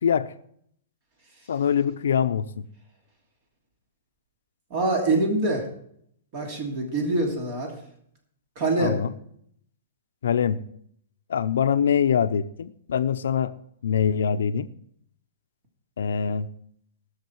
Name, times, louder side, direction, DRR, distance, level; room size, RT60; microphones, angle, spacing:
voice 1, 0.0-0.3 1.5-2.7 8.8-9.1 10.2-10.6 11.3-13.5 13.8-14.7 16.0-16.5, left 7 dB, 90° left, 11 dB, 0.7 m, -24 dB
voice 2, 4.7-5.6 6.3-7.7 8.6-9.0, right 2 dB, 40° right, 1 dB, 2.9 m, -24 dB
17.5 x 6.6 x 4.7 m, 0.68 s
hypercardioid pair, 160°, 0 cm